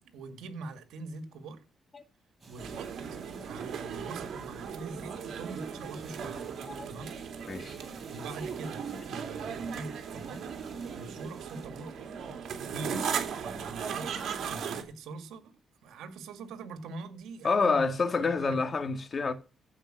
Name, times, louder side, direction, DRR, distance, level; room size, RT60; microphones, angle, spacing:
voice 1, 0.0-1.6 2.5-2.9 3.4-6.4 6.8-7.1 8.1-10.6 10.9-14.1 14.5-15.5 15.8-18.6, right 3 dB, 85° right, 2.1 m, -43 dB
sound 1, 2.4-11.7, right 3 dB, 30° right, 7.9 m, -56 dB
sound 2, 2.6-14.8, right 7 dB, 70° right, 2.9 m, -37 dB
voice 2, 17.4-19.3, left 4 dB, 40° left, 1.9 m, -27 dB
15.5 x 5.2 x 7.7 m
cardioid pair, 85°, 0 cm